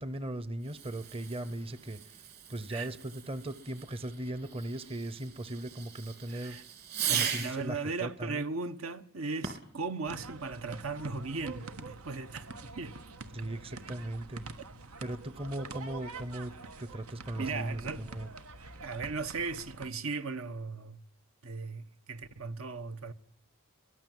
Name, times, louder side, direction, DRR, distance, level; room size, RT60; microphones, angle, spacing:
voice 1, 0.0-6.6 7.1-8.4 13.3-14.4 15.0-16.5 16.8-18.3, right 1 dB, 25° right, 0.8 m, -38 dB
Fireworks, 0.6-7.7 9.3-9.8, right 8 dB, 45° right, 3.1 m, -39 dB
voice 2, 6.3-6.6 7.0-13.0 17.4-18.0 18.8-21.0 21.4-23.1, right 4 dB, 70° right, 1.1 m, -37 dB
sound 1, 10.0-19.9, right 3 dB, 90° right, 1.5 m, -46 dB
22.5 x 16.5 x 7.7 m
head